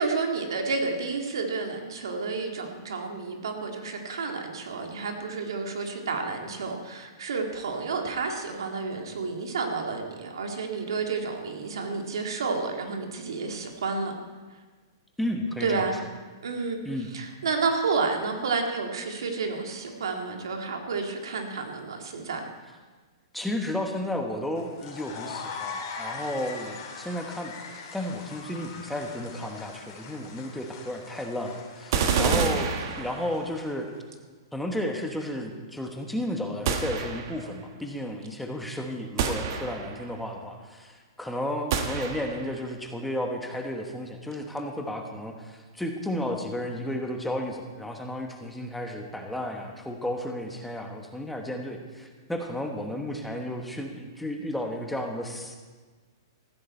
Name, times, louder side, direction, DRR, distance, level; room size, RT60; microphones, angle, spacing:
voice 1, 0.0-14.1 15.6-15.9 16.4-16.8 17.1-22.5 32.1-32.6, right 4 dB, 85° right, 3 dB, 2.2 m, -30 dB
voice 2, 15.2-15.8 16.8-17.1 23.3-32.7 32.9-33.9 34.5-55.5, left 1 dB, 5° left, 2 dB, 1.2 m, -33 dB
sound 1, 24.6-33.9, left 5 dB, 45° left, 3.0 m, -41 dB
sound 2, 31.9-33.6 36.7-37.5 39.2-40.1 41.7-42.6, right 6 dB, 55° right, 1.4 m, -28 dB
15.0 x 12.5 x 4.4 m, 1.4 s
hypercardioid pair, 150°, 2 cm